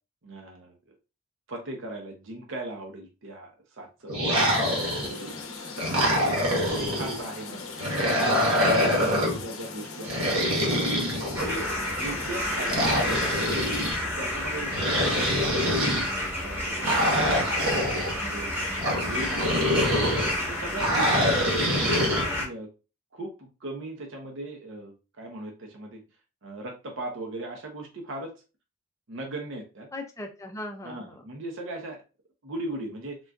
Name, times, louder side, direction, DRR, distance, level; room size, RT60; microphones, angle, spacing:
voice 1, 0.2-0.9 1.5-4.4 5.0-5.4 6.2-6.4 6.8-7.8 8.4-10.2 10.6-11.1 11.4-11.7 12.0-13.4 14.0-16.0 16.4-17.7 18.1-18.5 18.9-20.1 20.4-21.4 22.1-22.7 23.1-26.0 26.4-28.3 29.1-29.9 30.8-32.0 32.4-33.2, right 2 dB, 60° right, 2 dB, 0.6 m, -38 dB
sound 1, 4.1-5.3 5.8-7.2 7.8-9.4 10.0-11.8 12.7-14.0 14.7-16.1 16.8-18.1 18.8-20.3 20.8-22.2, equal, 80° right, 1.0 m, -25 dB
sound 2, 4.4-13.9, left 4 dB, 75° left, 0.6 m, -40 dB
voice 2, 5.9-6.9 19.4-19.7 29.9-31.2, left 1 dB, 15° left, 3 dB, 0.4 m, -41 dB
sound 3, 11.3-22.4, left 1 dB, 10° right, 0.9 m, -30 dB
3.7 x 2.4 x 2.2 m, 0.31 s
head